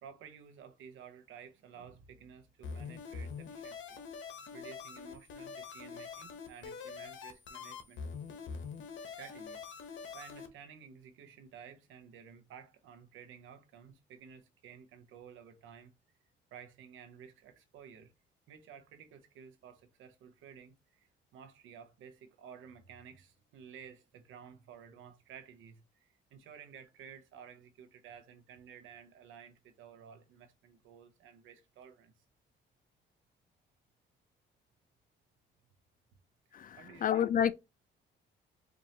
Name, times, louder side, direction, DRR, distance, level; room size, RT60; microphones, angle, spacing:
voice 1, 0.0-4.0 4.5-8.0 9.0-9.6 10.1-15.9 16.5-18.1 18.5-32.1 36.5-37.3, right 7 dB, 90° right, 0.8 m, -53 dB
sound 1, 2.6-10.5, left 5 dB, 70° left, 0.9 m, -45 dB
voice 2, 36.5-37.5, left 9 dB, 45° left, 0.4 m, -29 dB
4.4 x 2.6 x 2.8 m
cardioid pair, 90°, 20 cm